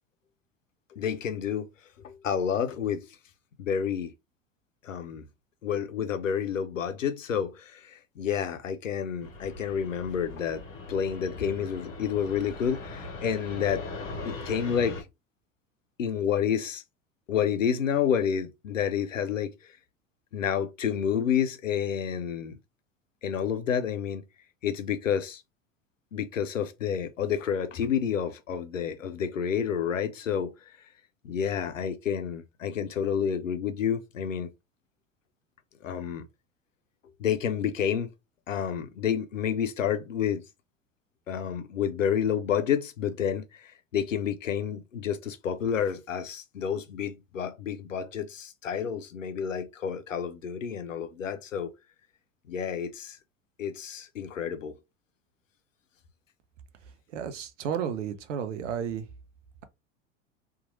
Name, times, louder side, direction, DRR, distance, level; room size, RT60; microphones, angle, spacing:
voice 1, 0.9-1.7 2.0-3.0 3.6-4.1 4.8-5.2 5.6-10.6 10.9-13.8 14.3-14.9 16.0-16.8 17.3-19.5 20.3-22.6 23.2-24.2 24.6-25.4 26.1-30.5 31.2-34.5 35.8-36.3 37.2-38.1 38.5-40.4 41.3-51.7 52.5-53.2 53.6-54.7, left 8 dB, 90° left, 0.5 m, -29 dB
Fixed-wing aircraft airplane, 9.2-15.0, left 3 dB, 35° left, 0.9 m, -40 dB
voice 2, 57.1-59.1, right 8 dB, 70° right, 0.7 m, -32 dB
2.9 x 2.4 x 2.5 m
figure-of-eight pair, 80°, 37 cm